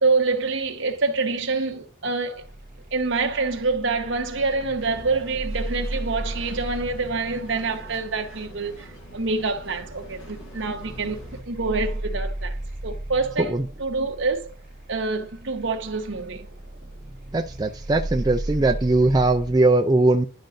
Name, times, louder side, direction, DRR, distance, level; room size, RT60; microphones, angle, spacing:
voice 1, 0.0-2.4 2.9-11.2 11.5-12.5 12.8-14.5 14.9-16.5, right 3 dB, 65° right, 1.1 m, -26 dB
sound 1, 2.3-19.7, right 1 dB, 45° right, 1.9 m, -36 dB
sound 2, 4.8-11.4, equal, 75° left, 1.8 m, -46 dB
voice 2, 17.3-20.3, right 2 dB, 20° right, 0.4 m, -20 dB
11.0 x 5.2 x 2.6 m
head